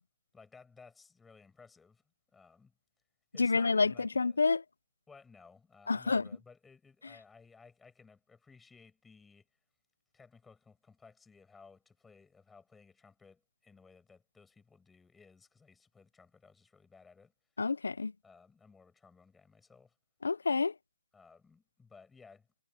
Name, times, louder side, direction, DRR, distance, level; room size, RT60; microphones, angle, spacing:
voice 1, 0.3-2.0 2.3-2.7 3.3-4.5 5.1-9.5 10.1-17.3 18.2-20.0 21.1-22.5, left 4 dB, 5° left, 7.4 m, -59 dB
voice 2, 3.4-4.6 5.9-6.2 17.6-18.1 20.2-20.7, left 4 dB, 75° left, 0.4 m, -28 dB
hypercardioid pair, 170°, 0 cm